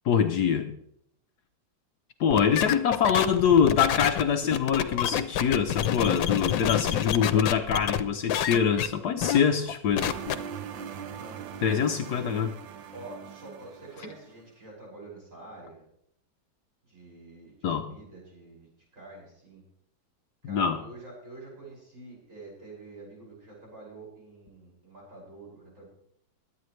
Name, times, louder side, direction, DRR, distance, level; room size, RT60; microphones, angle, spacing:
voice 1, 0.0-0.7 2.2-10.1 11.6-12.5 17.6-17.8 20.4-20.8, left 7 dB, 65° left, 7 dB, 1.2 m, -24 dB
sound 1, 2.3-8.0 8.3-8.9 9.2-9.4 9.7-10.3, left 10 dB, 85° left, 1.5 m, -28 dB
sound 2, 10.0-14.4, right 8 dB, 85° right, 1.6 m, -41 dB
voice 2, 11.1-12.4 12.9-15.8 16.8-19.6 20.4-25.9, right 2 dB, 40° right, -5 dB, 6.4 m, -47 dB
22.0 x 9.6 x 3.2 m, 0.72 s
omnidirectional pair, 2.0 m